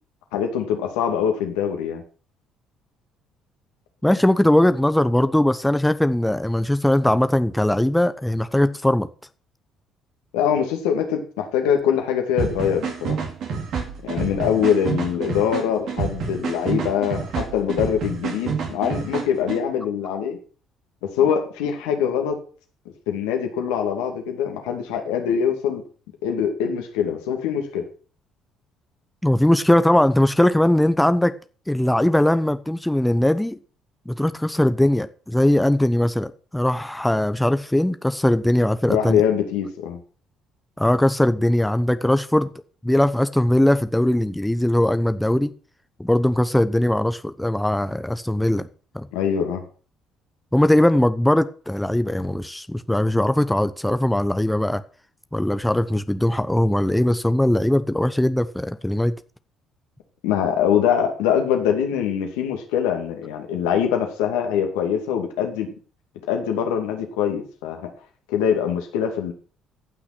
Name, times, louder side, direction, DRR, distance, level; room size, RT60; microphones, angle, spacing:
voice 1, 0.3-2.0 10.3-13.2 14.0-20.4 21.0-22.4 23.1-25.8 26.2-27.9 38.9-40.0 49.1-49.6 60.2-65.7 66.3-67.9 68.3-69.3, left 8 dB, 75° left, 2.5 m, -23 dB
voice 2, 4.0-9.1 29.2-31.4 31.7-33.6 34.1-39.2 40.8-42.5 42.8-45.5 46.0-48.7 48.9-49.1 50.5-54.8 55.3-59.1, left 1 dB, 5° left, 0.9 m, -20 dB
sound 1, 12.4-19.6, right 5 dB, 60° right, 3.1 m, -28 dB
16.5 x 6.2 x 6.1 m
hypercardioid pair, 55°, 0 cm